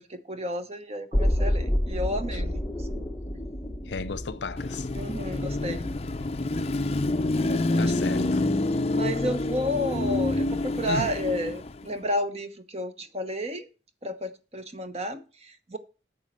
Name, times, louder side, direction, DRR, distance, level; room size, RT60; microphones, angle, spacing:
voice 1, 0.1-3.1 4.9-5.9 6.6-6.8 7.4-8.0 8.9-13.7 14.0-15.8, equal, 35° right, 1.1 m, -32 dB
sound 1, 1.1-7.1 7.4-7.5, equal, 10° left, 1.5 m, -30 dB
voice 2, 3.9-4.9 7.8-8.4 10.9-11.1, left 4 dB, 85° left, 0.7 m, -33 dB
Car passing by / Traffic noise roadway noise / Engine, 4.6-11.9, left 2 dB, 35° left, 0.6 m, -27 dB
9.4 x 5.6 x 7.4 m
head